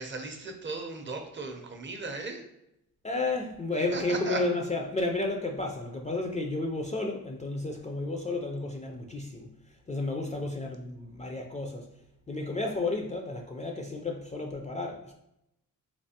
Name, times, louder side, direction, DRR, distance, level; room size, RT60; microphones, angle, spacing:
voice 1, 0.0-2.5 3.9-4.5, right 3 dB, 35° right, 4 dB, 0.5 m, -36 dB
voice 2, 3.0-9.5 9.9-11.9 12.3-15.1, left 2 dB, 20° left, 2 dB, 0.3 m, -32 dB
3.3 x 3.1 x 2.7 m, 0.83 s
wide cardioid pair, 115°, 35 cm